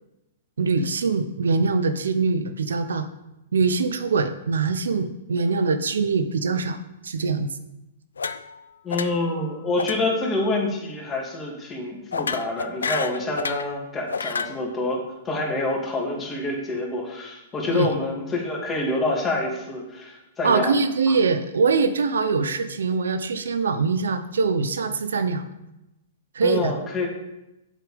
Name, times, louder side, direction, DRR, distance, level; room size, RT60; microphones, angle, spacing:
voice 1, 0.6-3.1 3.5-6.8 7.0-7.5 17.7-17.9 20.4-25.5 26.3-26.7, right 4 dB, 80° right, 10 dB, 0.8 m, -23 dB
sound 1, 8.2-8.6 8.9-9.3 9.8-10.0 10.3-10.6 12.1-13.7 14.1-14.6, left 5 dB, 85° left, 0.5 m, -30 dB
voice 2, 8.8-20.7 26.4-27.1, left 2 dB, 20° left, -2 dB, 2.7 m, -27 dB
7.6 x 6.5 x 5.2 m, 0.92 s
hypercardioid pair, 120°, 0 cm